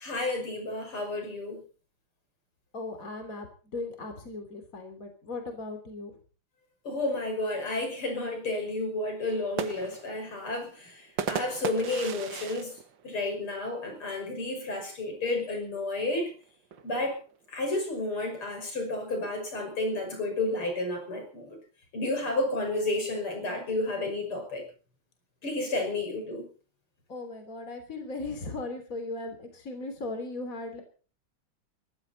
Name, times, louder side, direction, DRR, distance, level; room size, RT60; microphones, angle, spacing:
voice 1, 0.0-1.6 6.8-12.7 13.0-16.3 16.8-17.2 17.5-21.6 21.9-24.6 25.4-26.5, left 2 dB, 80° left, 3 dB, 6.6 m, -31 dB
voice 2, 2.7-3.5 3.7-6.2 27.1-30.8, left 2 dB, 40° left, 6 dB, 3.7 m, -37 dB
sound 1, 9.3-13.9 14.3-14.4 14.7-15.2 16.0-17.6, right 7 dB, 60° right, 1.8 m, -38 dB
22.5 x 15.0 x 4.2 m, 0.40 s
omnidirectional pair, 2.4 m